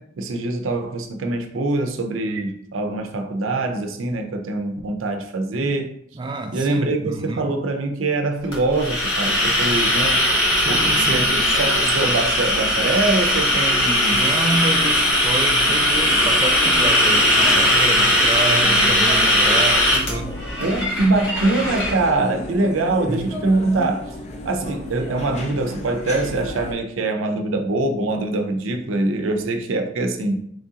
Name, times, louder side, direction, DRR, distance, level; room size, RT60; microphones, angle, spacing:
voice 1, 0.0-5.9 6.5-10.2 10.7-14.3 20.6-24.1 24.4-30.4, right 2 dB, 90° right, 5 dB, 0.5 m, -23 dB
voice 2, 6.1-7.5 10.5-11.3 14.1-20.4 23.1-23.2, right 2 dB, 25° right, 5 dB, 0.4 m, -28 dB
sound 1, 8.5-21.9, equal, 80° left, 1.3 m, -19 dB
sound 2, 9.2-26.7, left 1 dB, 35° left, 0.5 m, -34 dB
3.7 x 3.1 x 2.7 m, 0.70 s
head